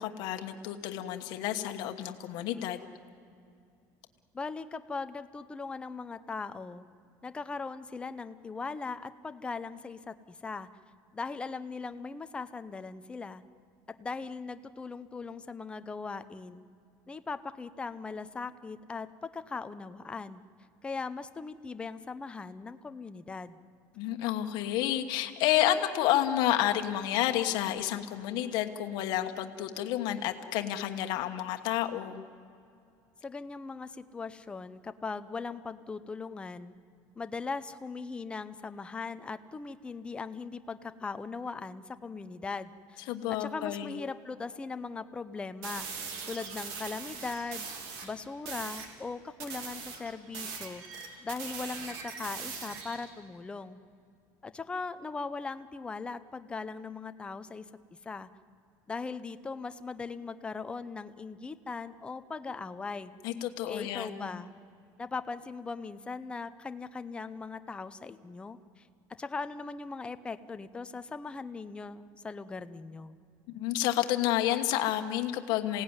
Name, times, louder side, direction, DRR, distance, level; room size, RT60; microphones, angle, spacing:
voice 1, 0.0-2.8 24.0-32.2 43.1-44.0 63.2-64.3 73.5-75.8, left 12 dB, 60° left, 5 dB, 1.3 m, -30 dB
voice 2, 4.3-6.8 7.2-10.7 11.1-13.4 13.9-16.6 17.1-20.4 20.8-23.6 33.2-36.7 37.2-45.9 46.3-47.7 48.0-53.8 54.4-57.7 58.0-58.3 58.9-63.1 63.7-64.5 65.0-68.9 69.2-73.2, left 4 dB, 10° left, 11 dB, 0.6 m, -39 dB
sound 1, 45.6-48.1 48.5-48.9 49.4-53.1, right 5 dB, 70° right, 3.2 m, -41 dB
27.0 x 17.0 x 9.6 m, 2.4 s
cardioid pair, 165°, 8 cm